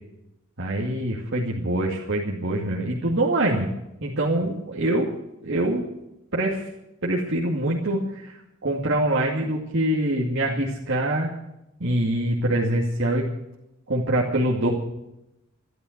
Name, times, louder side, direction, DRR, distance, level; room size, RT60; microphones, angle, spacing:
voice 1, 0.6-3.7 4.0-5.1 5.4-5.8 6.3-6.7 7.0-11.3 11.8-13.3 13.9-14.7, right 1 dB, 60° right, -3 dB, 2.5 m, -24 dB
13.5 x 12.5 x 8.0 m, 0.87 s
head